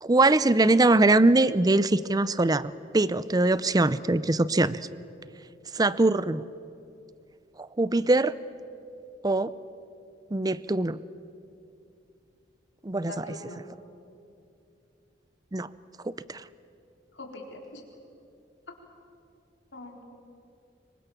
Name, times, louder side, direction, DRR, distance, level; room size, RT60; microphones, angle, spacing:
voice 1, 0.0-4.8 5.7-6.4 7.6-8.3 9.2-9.5 10.3-11.0 12.8-13.2 15.5-15.7 16.0-16.4, right 2 dB, 20° right, 17 dB, 0.6 m, -22 dB
voice 2, 13.1-13.6 17.1-17.8 19.7-20.0, left 2 dB, 80° left, 1 dB, 4.3 m, -42 dB
26.0 x 23.5 x 7.2 m, 2.6 s
head